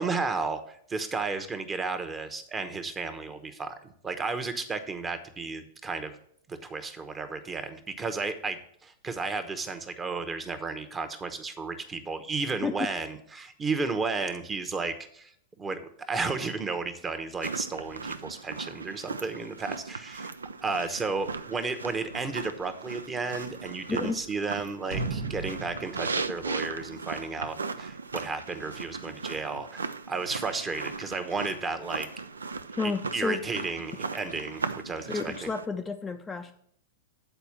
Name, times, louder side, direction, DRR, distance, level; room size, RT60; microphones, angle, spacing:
voice 1, 0.0-3.7 4.0-6.2 6.5-15.3 15.6-20.3 20.6-32.1 32.8-35.3, right 4 dB, 20° right, 8 dB, 0.9 m, -33 dB
sound 1, 17.4-35.7, right 4 dB, 80° right, 0.4 m, -37 dB
voice 2, 23.9-24.2 32.8-33.6 35.1-36.5, left 4 dB, 15° left, 5 dB, 0.5 m, -31 dB
sound 2, 24.9-27.7 28.0-28.1, right 3 dB, 65° right, 0.9 m, -36 dB
8.1 x 4.3 x 7.1 m, 0.67 s
figure-of-eight pair, 100°, 0 cm